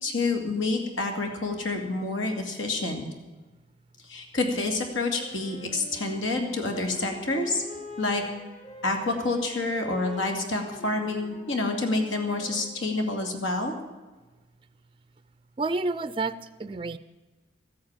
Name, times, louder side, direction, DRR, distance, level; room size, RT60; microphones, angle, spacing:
voice 1, 0.0-3.0 4.1-7.6 8.0-8.2 8.8-13.7, left 2 dB, 85° left, 3 dB, 2.5 m, -28 dB
Wind instrument woodwind instrument, 5.1-13.1, left 3 dB, 35° left, 1.4 m, -45 dB
voice 2, 15.6-17.0, right 3 dB, 25° right, 13 dB, 0.4 m, -29 dB
14.0 x 8.9 x 8.9 m, 1.3 s
head